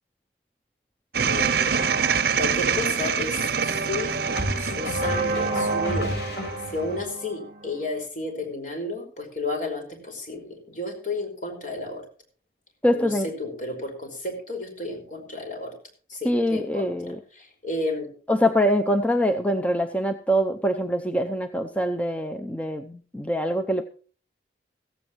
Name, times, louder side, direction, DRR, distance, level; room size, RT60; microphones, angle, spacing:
sound 1, 1.1-7.9, right 2 dB, 40° right, 1.8 m, -31 dB
sound 2, 1.1-6.6, right 6 dB, 60° right, 0.9 m, -26 dB
sound 3, 1.9-2.0 4.4-7.0, equal, 80° left, 6.8 m, -32 dB
voice 1, 2.4-6.1 6.7-12.0 12.9-13.1 13.4-15.7 16.1-16.9 17.4-18.1, left 2 dB, 45° left, 3 dB, 5.2 m, -32 dB
voice 2, 12.8-13.3 16.2-17.2 18.3-23.8, equal, 10° left, 6 dB, 0.6 m, -24 dB
16.0 x 15.5 x 3.1 m, 0.40 s
head